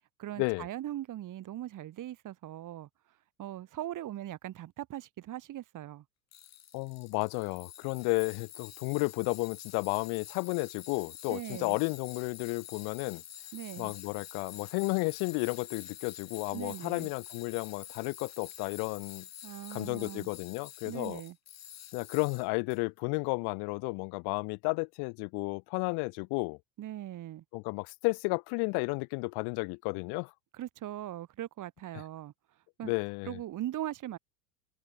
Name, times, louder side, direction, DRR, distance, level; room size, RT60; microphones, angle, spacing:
voice 1, 0.2-2.9 3.4-6.0 11.3-11.8 13.5-13.9 16.5-17.1 19.4-20.3 20.9-21.4 26.8-27.4 30.5-32.3 32.8-32.9 33.2-34.2, right 13 dB, 40° right, 5.3 m, -40 dB
Tools, 6.3-22.8, left 10 dB, 30° left, 4.4 m, -48 dB
voice 2, 6.7-13.2 13.8-19.3 19.7-21.2 21.9-26.6 27.5-30.3 32.8-33.4, left 33 dB, 50° left, 1.9 m, -32 dB
hypercardioid pair, 90°, 49 cm